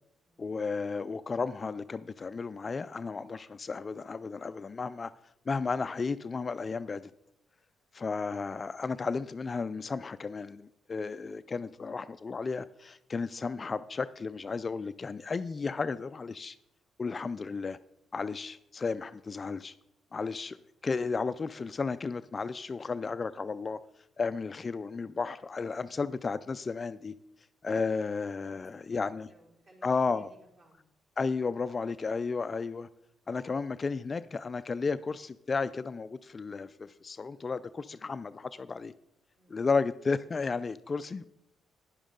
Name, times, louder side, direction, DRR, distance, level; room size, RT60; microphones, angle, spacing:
voice 1, 0.4-5.1 5.5-7.1 7.9-16.6 17.0-17.8 18.1-19.7 20.1-23.8 24.2-27.1 27.6-29.3 29.8-30.3 31.2-32.9 33.3-38.9 39.5-41.3, left 4 dB, 35° left, 13 dB, 0.3 m, -33 dB
voice 2, 28.3-30.8 39.3-39.6, right 1 dB, 40° right, -4 dB, 4.3 m, -62 dB
10.0 x 10.0 x 3.7 m, 0.81 s
cardioid pair, 90°, 0 cm